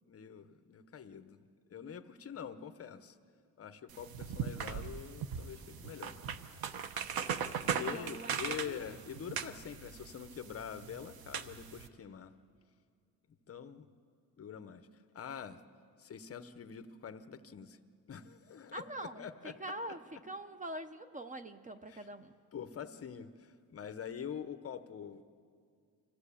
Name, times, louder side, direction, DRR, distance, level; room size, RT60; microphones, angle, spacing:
voice 1, 0.1-1.4 1.7-3.2 3.6-6.2 7.7-12.3 13.5-13.9 14.4-15.6 16.0-17.8 18.1-19.6 21.9-22.1 22.5-25.2, left 8 dB, 40° left, 11 dB, 0.8 m, -45 dB
sound 1, 3.9-11.9, right 7 dB, 80° right, 1.0 m, -39 dB
voice 2, 7.6-8.8 18.7-20.0 20.3-22.4, right 1 dB, 20° right, 10 dB, 0.5 m, -44 dB
25.5 x 15.0 x 8.4 m, 2.2 s
wide cardioid pair, 165°, 35 cm